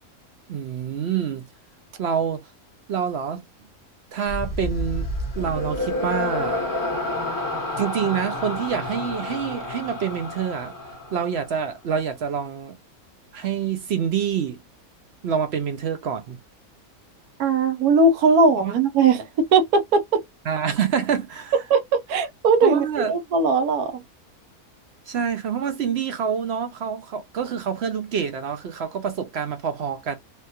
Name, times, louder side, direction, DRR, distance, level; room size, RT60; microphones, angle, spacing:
voice 1, 0.5-1.4 2.0-2.5 2.9-3.4 4.1-5.1 5.4-6.6 7.8-10.7 11.1-12.8 13.3-14.6 15.2-16.4 18.6-18.7 20.5-21.5 22.6-23.1 25.1-30.2, right 7 dB, 65° right, 0.6 m, -26 dB
sound 1, 4.3-11.6, left 1 dB, 25° left, 0.4 m, -29 dB
voice 2, 17.4-20.0 21.7-24.0, right 4 dB, 85° right, 1.2 m, -19 dB
3.4 x 2.3 x 2.7 m
omnidirectional pair, 1.5 m